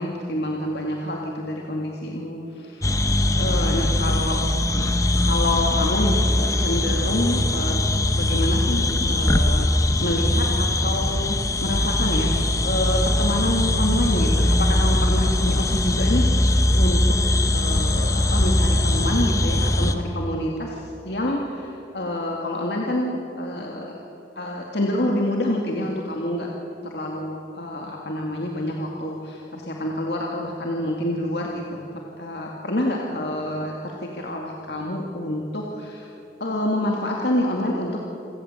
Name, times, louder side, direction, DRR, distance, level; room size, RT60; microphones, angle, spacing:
voice 1, 0.0-2.9 3.3-4.4 5.2-7.9 8.1-17.2 17.5-24.0 24.4-26.5 26.8-31.9 32.2-36.1 36.4-38.1, left 1 dB, 65° left, -1 dB, 2.3 m, -27 dB
sound 1, 2.8-20.0, left 1 dB, 15° left, 0.9 m, -21 dB
27.5 x 16.5 x 8.0 m, 2.9 s
head